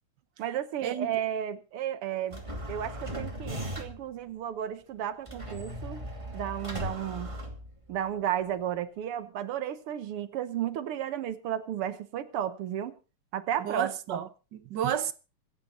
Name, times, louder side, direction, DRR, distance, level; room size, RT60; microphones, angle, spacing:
voice 1, 0.4-2.4 2.7-6.0 6.3-7.4 7.9-12.9 13.3-14.2, right 10 dB, 85° right, 2.0 m, -33 dB
sound 1, 2.3-4.1 5.3-8.1, equal, 15° right, 2.4 m, -38 dB
voice 2, 13.6-15.1, right 9 dB, 60° right, 1.5 m, -31 dB
25.5 x 8.6 x 4.1 m
omnidirectional pair, 2.4 m